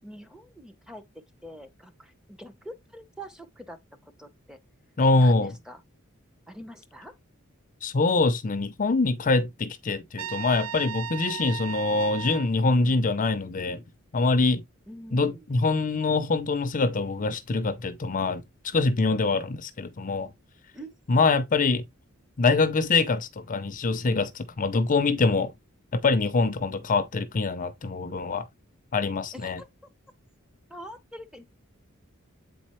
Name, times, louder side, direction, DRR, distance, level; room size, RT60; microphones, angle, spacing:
voice 1, 0.0-1.0 1.4-3.8 4.0-4.6 5.1-5.8 6.5-7.1 14.9-15.5 20.7-20.9 29.4-29.7 30.7-31.4, equal, 5° right, 0.8 m, -44 dB
voice 2, 5.0-5.5 7.8-13.8 14.1-14.6 15.1-20.3 21.1-21.8 22.4-25.5 25.9-28.5 28.9-29.6, left 3 dB, 40° left, 0.6 m, -24 dB
Trumpet, 10.2-12.5, right 8 dB, 80° right, 0.3 m, -36 dB
8.1 x 4.2 x 3.0 m
head